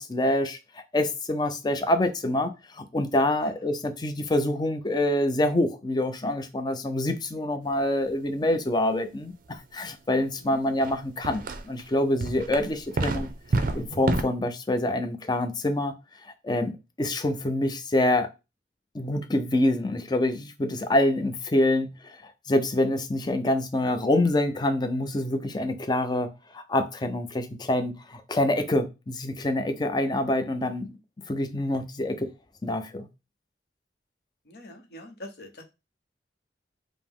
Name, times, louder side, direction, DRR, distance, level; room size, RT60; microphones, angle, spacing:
voice 1, 0.0-2.5 2.8-13.3 13.7-15.9 16.2-16.7 17.0-18.3 18.9-26.3 26.5-30.9 31.3-32.3 32.6-33.1, left 1 dB, 25° left, 0.5 m, -26 dB
sound 1, 10.8-10.9 11.2-11.8 12.2-14.2, right 2 dB, 50° right, 0.5 m, -28 dB
voice 2, 34.5-35.6, left 1 dB, 65° left, 0.9 m, -44 dB
5.1 x 2.0 x 3.5 m
head